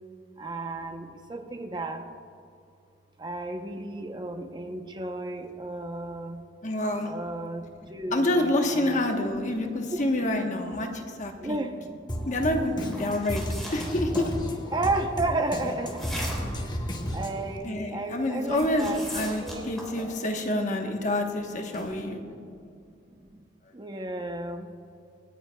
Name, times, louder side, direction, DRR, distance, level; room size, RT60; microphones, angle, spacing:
voice 1, 0.4-2.0 3.2-6.4 7.0-9.0 9.9-10.0 10.8-10.9 11.4-12.1 13.5-13.7 14.7-16.1 16.5-16.7 17.1-19.7 20.0-20.1 22.4-22.5 23.3-23.4 23.7-24.7, right 2 dB, 25° right, 5 dB, 0.7 m, -33 dB
voice 2, 6.6-7.1 8.1-11.6 12.3-13.4 13.7-14.3 17.6-22.2, left 1 dB, 40° left, 3 dB, 1.1 m, -27 dB
Drum kit, 12.1-17.6, equal, 25° left, 1.0 m, -34 dB
sound 1, 12.9-14.3 15.8-16.7 18.5-20.1 21.7-22.0, equal, ahead, 3.2 m, -37 dB
26.5 x 9.4 x 2.3 m, 2.5 s
head